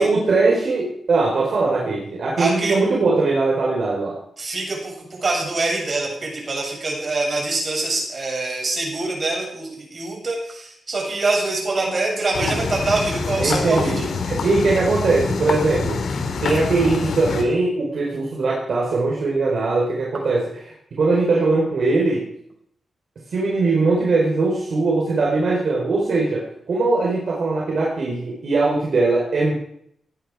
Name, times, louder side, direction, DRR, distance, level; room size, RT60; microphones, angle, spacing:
voice 1, 0.0-4.2 11.8-12.6 13.4-16.0 16.4-22.3 23.3-29.5, right 3 dB, 65° right, -3 dB, 4.5 m, -21 dB
voice 2, 2.4-2.7 4.4-14.1, right 2 dB, 45° right, 0 dB, 7.7 m, -24 dB
sound 1, 12.3-17.4, left 4 dB, 75° left, 2.4 m, -26 dB
18.5 x 11.0 x 4.9 m, 0.70 s
cardioid pair, 85°, 0 cm